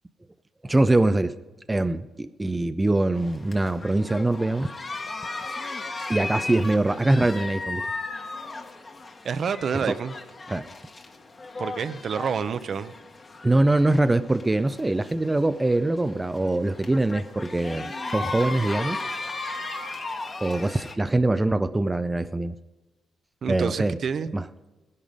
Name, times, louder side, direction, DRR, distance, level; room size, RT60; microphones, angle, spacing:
voice 1, 0.6-1.3 1.7-4.7 6.1-7.9 9.7-10.0 10.5-10.7 13.4-19.0 20.4-22.5 23.5-24.0 24.3-24.4, right 2 dB, 15° right, 11 dB, 0.4 m, -23 dB
sound 1, 3.2-20.9, left 3 dB, 30° left, 1.4 m, -36 dB
voice 2, 9.2-10.2 11.6-12.9 23.4-24.3, right 6 dB, 50° right, 12 dB, 0.7 m, -28 dB
17.5 x 11.0 x 5.2 m, 1.2 s
cardioid pair, 90°, 0 cm